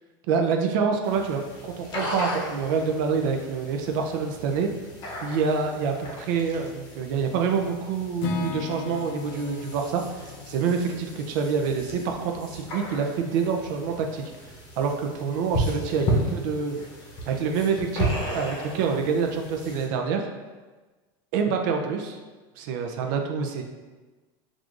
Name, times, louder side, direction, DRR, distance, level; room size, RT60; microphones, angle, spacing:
voice 1, 0.3-4.7 5.2-14.2 14.8-16.8 17.3-20.3 21.3-22.2 22.6-23.6, right 5 dB, 65° right, 3 dB, 0.4 m, -26 dB
sound 1, 1.0-19.9, equal, 35° left, 0.7 m, -35 dB
Acoustic guitar / Strum, 8.2-12.2, left 4 dB, 90° left, 0.5 m, -36 dB
6.1 x 2.4 x 2.5 m, 1.3 s
supercardioid pair, 165°, 12 cm